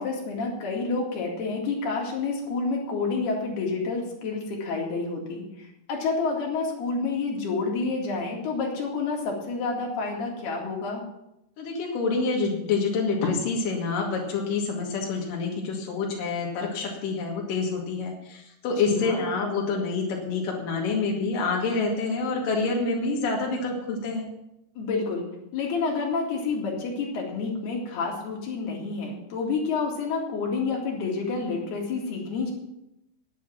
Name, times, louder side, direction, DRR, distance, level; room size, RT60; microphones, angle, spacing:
voice 1, 0.0-11.0 18.8-19.2 24.8-25.3 25.5-32.5, left 4 dB, 80° left, -1 dB, 4.2 m, -29 dB
voice 2, 11.6-24.3, left 4 dB, 60° left, -1 dB, 3.6 m, -27 dB
10.0 x 9.1 x 7.5 m, 0.85 s
omnidirectional pair, 4.5 m